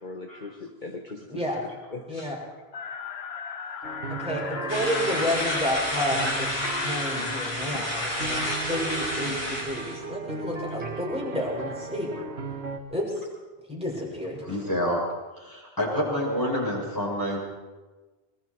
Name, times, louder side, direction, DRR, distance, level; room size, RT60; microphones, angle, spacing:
voice 1, 0.0-2.3 7.7-8.1, left 3 dB, 50° left, 2 dB, 1.7 m, -40 dB
voice 2, 1.3-1.6 2.1-2.4 4.1-12.1 12.9-13.2 13.7-14.4, left 1 dB, 5° right, -3 dB, 6.3 m, -31 dB
sound 1, 2.7-8.9, left 6 dB, 80° left, 1.2 m, -37 dB
sound 2, 3.8-12.8, right 4 dB, 90° right, 2.0 m, -37 dB
sound 3, 4.7-10.0, equal, 65° left, 6.9 m, -30 dB
voice 3, 14.4-15.0 15.3-17.4, equal, 20° left, -5 dB, 8.1 m, -28 dB
25.0 x 22.5 x 4.8 m, 1.2 s
omnidirectional pair, 1.0 m